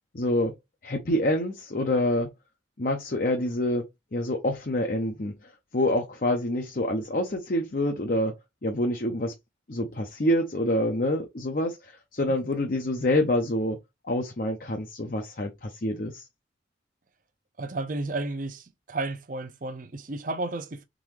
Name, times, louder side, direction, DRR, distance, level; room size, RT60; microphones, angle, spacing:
voice 1, 0.1-0.5 0.8-2.3 2.8-8.4 8.6-9.3 9.7-13.8 14.0-16.3, left 1 dB, 45° left, 0.7 m, -27 dB
voice 2, 17.6-20.8, right 2 dB, 45° right, 0.6 m, -32 dB
3.9 x 3.8 x 3.1 m
head